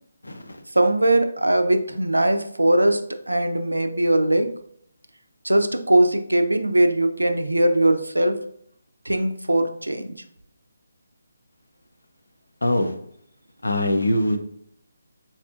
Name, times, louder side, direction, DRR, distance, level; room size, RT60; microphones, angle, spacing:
voice 1, 0.2-0.6 12.6-12.9 13.6-14.4, left 1 dB, 80° left, 6 dB, 0.5 m, -22 dB
voice 2, 0.7-4.5 5.4-8.4 9.1-10.2, right 1 dB, 85° right, 8 dB, 0.4 m, -20 dB
4.1 x 2.4 x 2.4 m, 0.69 s
figure-of-eight pair, 150°, 0 cm